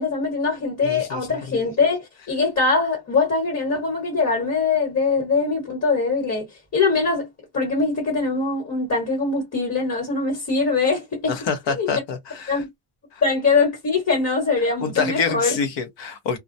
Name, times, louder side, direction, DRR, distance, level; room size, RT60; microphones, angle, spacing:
voice 1, 0.0-6.4 6.7-7.3 7.5-11.3 11.7-11.9 12.5-12.7 13.2-15.6, left 4 dB, 35° left, 1.3 m, -22 dB
voice 2, 0.8-1.6 11.3-12.6 13.1-13.2 14.8-16.4, left 5 dB, 60° left, 0.8 m, -27 dB
2.3 x 2.1 x 2.6 m
cardioid pair, 115°, 48 cm